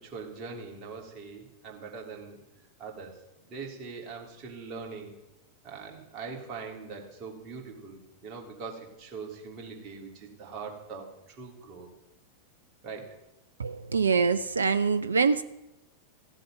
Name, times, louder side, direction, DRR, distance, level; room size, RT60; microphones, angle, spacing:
voice 1, 0.0-2.4 2.8-3.2 3.4-5.2 5.6-11.9 12.8-13.1, right 5 dB, 35° right, 0 dB, 3.4 m, -42 dB
voice 2, 13.6-15.4, right 5 dB, 75° right, 13 dB, 0.5 m, -24 dB
15.5 x 7.7 x 9.4 m, 0.92 s
figure-of-eight pair, 90°, 0 cm